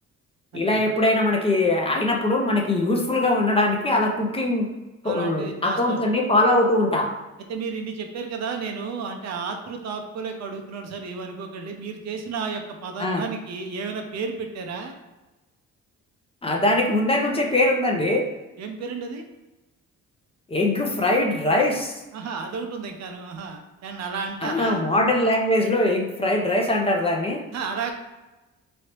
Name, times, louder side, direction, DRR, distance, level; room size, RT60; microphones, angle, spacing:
voice 1, 0.5-4.7 5.0-7.1 13.0-13.2 16.4-18.3 20.5-21.9 24.4-27.4, left 1 dB, 20° left, 0 dB, 0.5 m, -22 dB
voice 2, 5.0-6.0 7.5-14.9 18.6-19.2 22.1-24.8 27.5-27.9, right 5 dB, 60° right, 4 dB, 0.6 m, -32 dB
3.1 x 2.7 x 3.0 m, 1.1 s
cardioid pair, 90°, 30 cm